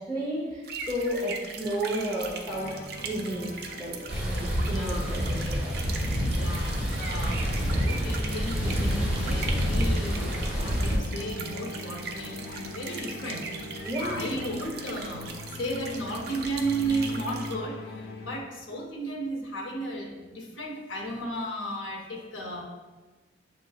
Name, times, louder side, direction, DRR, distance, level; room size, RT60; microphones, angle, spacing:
voice 1, 0.0-1.3 1.6-2.7 3.0-5.8 13.8-14.5, right 1 dB, 10° left, -8 dB, 0.8 m, -32 dB
sound 1, 0.6-17.6, right 4 dB, 55° right, 0.5 m, -40 dB
sound 2, 2.5-18.4, left 2 dB, 55° left, 0.4 m, -42 dB
sound 3, 4.1-11.0, equal, 5° right, 1.2 m, -28 dB
voice 2, 4.7-5.1 6.2-22.6, right 1 dB, 90° left, 1 dB, 0.7 m, -34 dB
7.2 x 3.1 x 2.4 m, 1.2 s
head